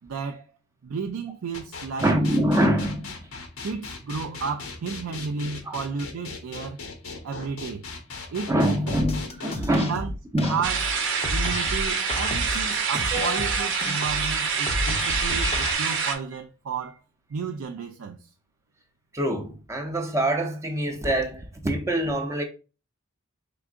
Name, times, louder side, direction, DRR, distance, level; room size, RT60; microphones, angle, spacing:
voice 1, 0.0-0.5 0.8-2.1 3.6-6.8 7.2-7.9 8.3-9.0 9.8-10.1 10.5-10.8 11.3-17.0 17.3-18.3, right 5 dB, 80° right, 0.4 m, -32 dB
sound 1, 1.5-9.5, left 4 dB, 85° left, 1.0 m, -38 dB
voice 2, 2.0-3.3 5.6-5.8 8.5-10.0 10.3-10.6 13.1-13.5 14.7-15.2 19.1-22.4, right 1 dB, 15° right, 0.6 m, -25 dB
sound 2, 8.9-15.7, left 1 dB, 30° left, 0.6 m, -31 dB
sound 3, 10.6-16.1, right 5 dB, 60° right, 0.9 m, -26 dB
4.7 x 3.6 x 2.4 m
head